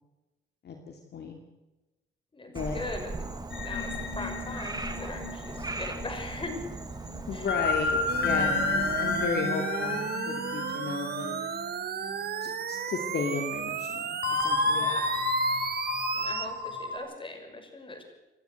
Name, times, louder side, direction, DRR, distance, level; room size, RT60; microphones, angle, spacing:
voice 1, 0.6-1.3 2.5-2.8 7.3-11.4 12.4-14.9, left 5 dB, 55° left, 3 dB, 2.5 m, -34 dB
voice 2, 2.3-3.3 3.6-6.6 7.3-7.6 8.3-8.8 14.6-15.1 16.1-18.0, left 2 dB, 25° left, 5 dB, 6.0 m, -40 dB
Frog, 2.6-9.3, right 3 dB, 20° right, 2.0 m, -38 dB
sound 1, 3.5-12.4 12.8-13.0 14.2-17.0, left 3 dB, 75° left, 4.1 m, -31 dB
sound 2, 8.1-16.5, right 8 dB, 55° right, 1.5 m, -34 dB
28.0 x 11.5 x 8.1 m, 1.1 s
cardioid pair, 90°, 20 cm